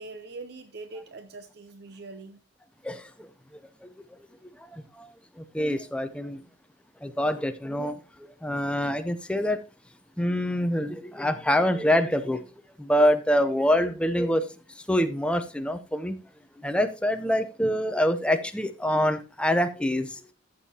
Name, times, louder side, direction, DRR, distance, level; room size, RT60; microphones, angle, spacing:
voice 1, 0.0-2.4, right 3 dB, 55° right, 0.7 m, -42 dB
voice 2, 2.8-3.3 3.8-3.9 4.6-6.4 7.0-8.0 8.4-9.6 10.2-12.5 12.8-14.5 14.7-16.2 16.6-20.2, equal, 5° left, 0.6 m, -25 dB
14.5 x 6.5 x 2.8 m
head